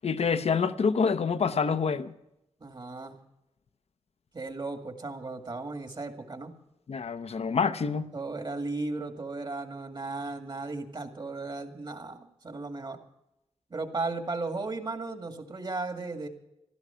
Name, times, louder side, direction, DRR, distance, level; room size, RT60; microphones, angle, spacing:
voice 1, 0.0-2.1 6.9-8.1, left 5 dB, 70° left, 0.8 m, -27 dB
voice 2, 2.6-3.2 4.3-6.5 8.1-13.0 13.7-16.3, right 3 dB, 45° right, 2.1 m, -35 dB
15.5 x 13.0 x 5.7 m
wide cardioid pair, 110°, 11 cm